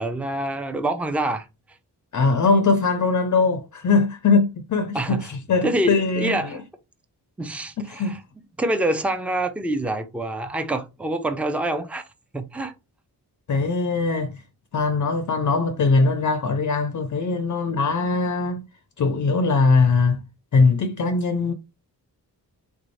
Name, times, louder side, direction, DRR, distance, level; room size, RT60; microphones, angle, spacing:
voice 1, 0.0-1.5 4.9-5.3 5.6-6.6 7.4-8.2 8.6-12.0 12.3-12.7, right 1 dB, 5° right, 0.4 m, -26 dB
voice 2, 2.1-6.6 7.9-8.2 13.5-14.4 14.7-18.6 19.0-20.2 20.5-21.5, left 4 dB, 50° left, 0.5 m, -21 dB
3.4 x 2.6 x 3.1 m
wide cardioid pair, 120°, 40 cm